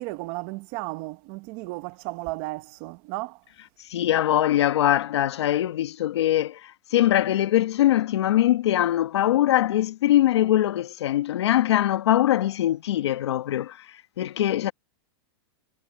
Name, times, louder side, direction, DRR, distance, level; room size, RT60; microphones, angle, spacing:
voice 1, 0.0-3.4, right 22 dB, 40° right, 1.1 m, -34 dB
voice 2, 3.9-13.8 14.2-14.7, left 13 dB, 75° left, 1.5 m, -22 dB
supercardioid pair, 160°, 14 cm